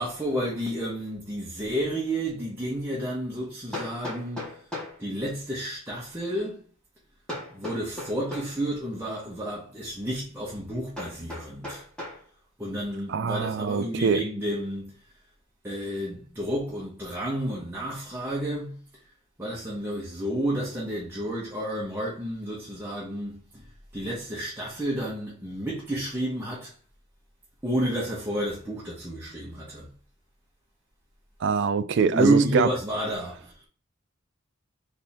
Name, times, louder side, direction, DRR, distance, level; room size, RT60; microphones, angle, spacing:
voice 1, 0.0-4.5 5.0-6.6 7.5-11.8 12.6-15.0 15.6-18.8 19.4-23.7 23.9-26.7 27.6-29.9 32.1-33.7, right 1 dB, 10° right, 1.0 m, -30 dB
Hammer, 3.7-5.0 7.3-8.6 11.0-12.2, left 1 dB, 5° left, 1.7 m, -37 dB
voice 2, 13.1-14.2 31.4-32.7, right 5 dB, 55° right, 0.4 m, -24 dB
3.5 x 3.5 x 4.3 m
head